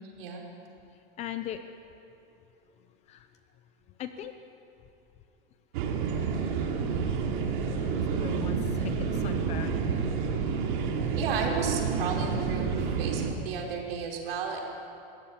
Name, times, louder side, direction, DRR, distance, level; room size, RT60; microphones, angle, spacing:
voice 1, 1.2-1.6 3.1-3.3 4.0-4.3 7.8-9.8, left 11 dB, 20° left, 9 dB, 0.7 m, -39 dB
sound 1, 5.7-13.3, right 5 dB, 55° right, 3.0 m, -29 dB
voice 2, 11.1-14.6, right 5 dB, 80° right, -1 dB, 5.2 m, -33 dB
22.5 x 16.5 x 9.9 m, 2.7 s
supercardioid pair, 170°, 29 cm